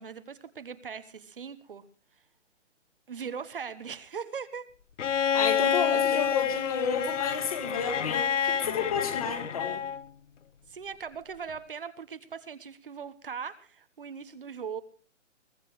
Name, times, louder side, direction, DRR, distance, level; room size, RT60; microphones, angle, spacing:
voice 1, 0.0-1.8 3.1-4.7 5.9-6.2 10.7-14.8, right 6 dB, 45° right, 12 dB, 1.1 m, -40 dB
Bowed string instrument, 5.0-10.0 11.5-11.6, left 8 dB, 75° left, 0.9 m, -28 dB
voice 2, 5.3-9.8, left 6 dB, 30° left, 7 dB, 2.2 m, -31 dB
22.5 x 15.5 x 3.2 m, 0.37 s
hypercardioid pair, 175°, 37 cm